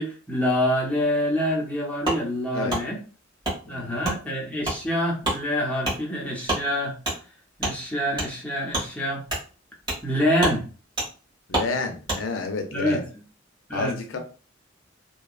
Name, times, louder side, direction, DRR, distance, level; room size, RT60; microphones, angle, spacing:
voice 1, 0.0-3.0 3.7-6.9 7.6-9.2 10.0-10.6 12.7-13.0 13.7-14.2, equal, 10° left, -4 dB, 0.7 m, -26 dB
Wood, 2.0-2.2 2.7-2.8 3.4-3.6 4.0-4.2 4.6-4.8 5.2-5.4 5.8-6.0 6.4-6.6 7.0-7.2 7.6-7.7 8.1-8.3 8.7-8.9 9.3-9.4 9.9-10.0 10.4-10.6 11.0-11.1 11.5-11.7 12.1-12.2, right 1 dB, 25° right, 1.3 m, -26 dB
voice 2, 3.6-4.1 11.5-13.0 13.7-14.2, left 3 dB, 85° left, 5 dB, 0.5 m, -30 dB
2.8 x 2.2 x 2.3 m, 0.36 s
head